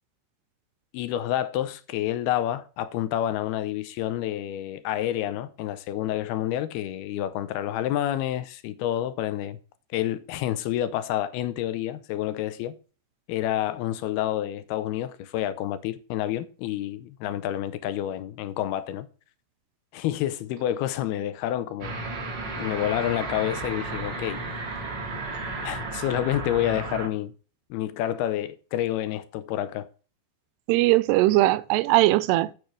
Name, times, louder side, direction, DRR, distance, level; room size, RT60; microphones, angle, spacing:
voice 1, 0.9-9.6 9.9-12.7 13.3-19.1 19.9-22.0 22.6-24.4 25.6-27.3 27.7-29.9, left 12 dB, 80° left, 2.5 m, -28 dB
sound 1, 21.8-27.1, right 3 dB, 50° right, 1.3 m, -33 dB
voice 2, 30.7-32.5, right 17 dB, 85° right, 2.6 m, -20 dB
9.0 x 6.8 x 4.8 m
omnidirectional pair, 4.8 m